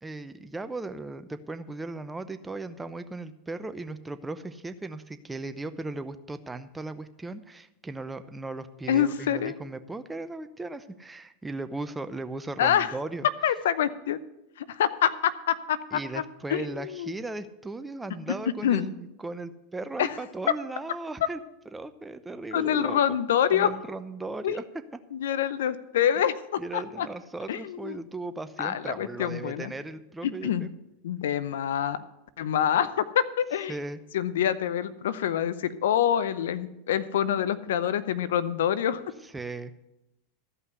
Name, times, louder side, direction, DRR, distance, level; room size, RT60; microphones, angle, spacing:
voice 1, 0.0-13.3 15.9-21.4 21.7-23.2 23.5-24.6 26.6-30.7 33.7-34.0 39.2-39.7, right 2 dB, 10° right, 10 dB, 0.8 m, -37 dB
voice 2, 8.9-9.5 12.6-12.9 13.4-14.2 14.6-16.2 16.5-17.1 18.6-18.9 20.0-20.1 22.5-23.7 24.4-24.6 25.1-27.1 27.5-28.0 28.6-29.7 30.2-30.6 31.0-32.0 32.4-33.7 34.1-39.0, left 9 dB, 75° left, 14 dB, 0.6 m, -26 dB
14.0 x 5.6 x 8.0 m, 0.90 s
hypercardioid pair, 95°, 0 cm